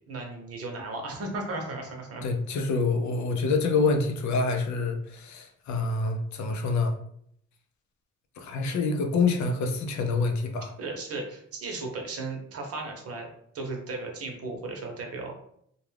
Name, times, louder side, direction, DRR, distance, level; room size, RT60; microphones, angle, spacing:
voice 1, 0.1-2.3 10.8-13.3 13.5-15.3, right 3 dB, 50° right, 2 dB, 0.8 m, -35 dB
voice 2, 2.2-6.9 8.4-10.7, left 3 dB, 70° left, 5 dB, 0.6 m, -26 dB
2.4 x 2.2 x 3.2 m, 0.70 s
cardioid pair, 90°, 30 cm